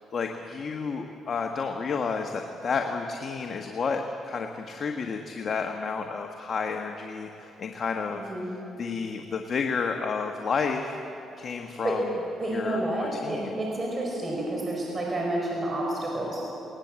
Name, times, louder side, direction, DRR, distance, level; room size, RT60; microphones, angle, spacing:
voice 1, 0.1-8.2 8.8-10.9 11.4-12.1 12.5-13.6, left 5 dB, 50° left, 3 dB, 1.3 m, -31 dB
voice 2, 12.4-16.4, right 1 dB, 35° right, -2 dB, 4.8 m, -29 dB
20.5 x 19.5 x 7.5 m, 2.9 s
cardioid pair, 90°, 0 cm